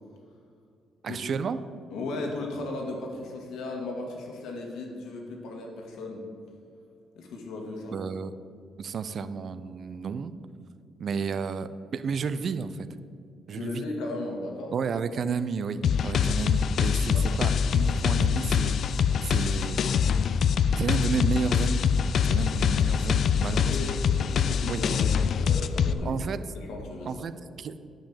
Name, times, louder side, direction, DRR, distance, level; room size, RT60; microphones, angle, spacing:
voice 1, 1.0-1.6 7.9-8.3 8.8-10.3 11.0-12.9 13.5-13.8 14.7-19.8 20.8-21.8 22.3-23.9 24.7-24.8 26.0-26.4 27.1-27.3 27.6-27.8, right 5 dB, 55° right, 13 dB, 0.5 m, -32 dB
voice 2, 1.9-6.2 7.2-8.0 13.5-14.7 17.1-17.4 23.5-25.1 25.4-26.2 26.5-27.2, left 2 dB, 85° left, 1 dB, 1.9 m, -36 dB
sound 1, 15.8-25.9, left 7 dB, 60° left, 0.4 m, -24 dB
10.0 x 5.3 x 7.3 m, 2.4 s
cardioid pair, 90°, 0 cm